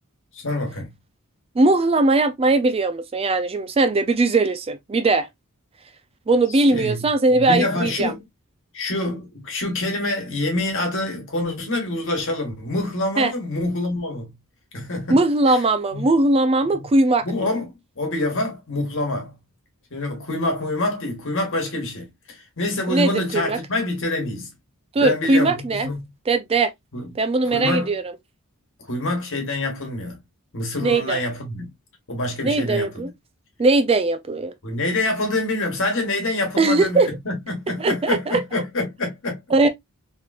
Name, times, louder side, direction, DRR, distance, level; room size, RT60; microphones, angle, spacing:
voice 1, 0.3-0.9 6.5-8.2 8.7-14.3 14.7-15.2 15.5-15.6 15.9-16.0 16.6-16.8 17.2-19.3 19.9-24.5 25.0-26.0 26.9-27.1 27.4-27.9 28.8-30.2 30.5-31.7 32.1-33.1 34.6-39.4, left 2 dB, 60° left, 1.3 m, -26 dB
voice 2, 1.6-5.3 6.3-8.1 13.2-13.3 15.1-17.2 22.9-23.6 24.9-25.9 26.3-26.7 27.2-28.0 30.8-31.2 32.4-33.1 33.6-34.5 36.6-37.1 37.8-38.2 39.5-39.7, right 2 dB, 25° right, 0.4 m, -19 dB
3.1 x 3.0 x 2.3 m
head